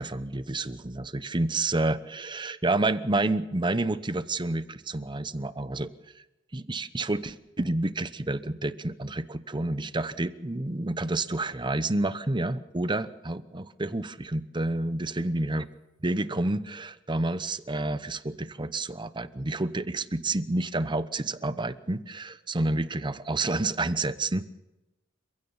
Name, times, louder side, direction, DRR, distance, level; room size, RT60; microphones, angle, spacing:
voice 1, 0.0-5.9 6.5-15.6 16.0-24.5, right 2 dB, 25° right, 13 dB, 0.8 m, -29 dB
29.5 x 16.5 x 5.7 m, 1.0 s
head